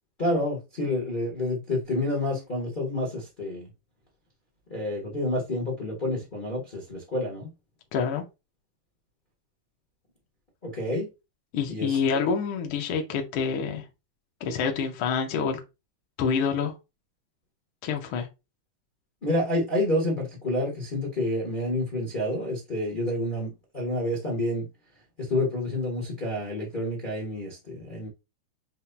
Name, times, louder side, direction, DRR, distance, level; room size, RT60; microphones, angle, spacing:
voice 1, 0.2-3.7 4.7-7.5 10.6-11.1 11.7-12.0 19.2-24.7 25.2-28.1, left 1 dB, 85° left, 0.4 m, -29 dB
voice 2, 7.9-8.2 11.5-13.8 14.4-15.6 16.2-16.7 17.8-18.3, left 6 dB, 65° left, 1.4 m, -27 dB
7.4 x 2.7 x 2.2 m
omnidirectional pair, 3.5 m